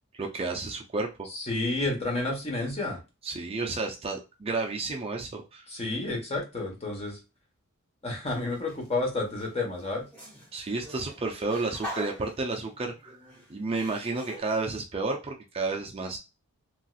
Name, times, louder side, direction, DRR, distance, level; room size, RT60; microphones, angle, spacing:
voice 1, 0.1-1.3 3.2-5.7 10.5-13.2 13.5-16.2, right 3 dB, 25° right, 2 dB, 0.5 m, -31 dB
voice 2, 1.3-3.0 5.7-7.2 8.0-10.1, left 2 dB, 30° left, 0 dB, 1.1 m, -30 dB
sound 1, 8.3-8.9 9.3-14.4, left 1 dB, 5° left, 1.3 m, -44 dB
3.0 x 2.8 x 2.3 m, 0.27 s
head